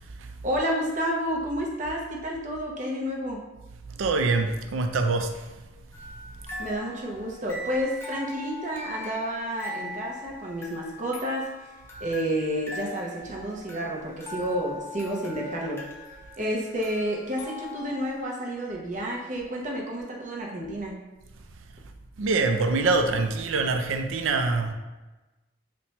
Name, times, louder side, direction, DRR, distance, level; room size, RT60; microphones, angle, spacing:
voice 1, 0.4-3.4 6.6-11.5 12.0-15.8 16.4-21.0, equal, 40° right, -2 dB, 0.6 m, -30 dB
voice 2, 3.9-5.5 22.2-24.7, right 3 dB, 85° right, 6 dB, 0.4 m, -25 dB
sound 1, 5.9-18.2, left 2 dB, 10° left, 0.4 m, -41 dB
4.2 x 2.1 x 2.8 m, 1.1 s
head